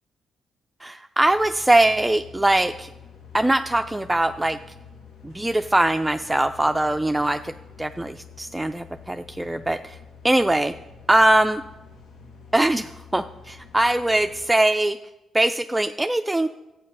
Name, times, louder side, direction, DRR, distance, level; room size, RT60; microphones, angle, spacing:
voice 1, 0.8-2.9 3.3-4.6 5.2-10.0 10.2-10.7 11.1-11.6 12.5-15.0 15.3-16.5, right 1 dB, 10° right, 7 dB, 0.4 m, -21 dB
sound 1, 1.2-14.5, left 5 dB, 80° left, 1.5 m, -47 dB
12.0 x 8.5 x 5.4 m, 1.0 s
cardioid pair, 75°, 0 cm